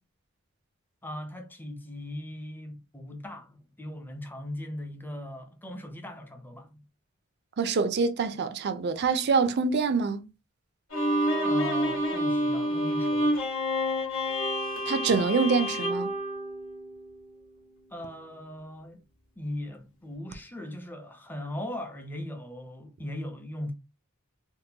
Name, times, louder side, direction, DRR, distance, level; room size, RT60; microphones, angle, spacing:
voice 1, 1.0-6.8 11.4-13.3 17.9-19.0 19.4-23.7, left 1 dB, 10° left, 0.5 m, -39 dB
voice 2, 7.6-10.2 14.9-16.1, right 4 dB, 50° right, 0.4 m, -25 dB
Bowed string instrument, 10.9-17.2, equal, 65° left, 1.4 m, -28 dB
3.6 x 2.2 x 2.8 m
head